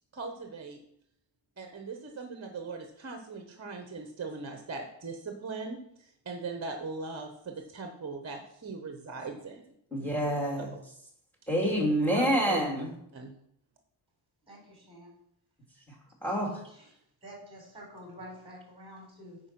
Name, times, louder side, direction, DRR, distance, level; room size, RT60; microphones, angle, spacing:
voice 1, 0.1-0.8 1.6-9.6 12.1-12.6 13.1-13.3, right 4 dB, 35° right, 4 dB, 1.0 m, -40 dB
voice 2, 9.9-10.7 11.5-12.9 16.2-16.5, equal, 5° left, -1 dB, 2.6 m, -27 dB
voice 3, 14.4-15.1 16.2-16.9 17.2-19.4, equal, 10° right, -2 dB, 4.0 m, -48 dB
9.9 x 4.7 x 5.9 m, 0.73 s
wide cardioid pair, 160°, 46 cm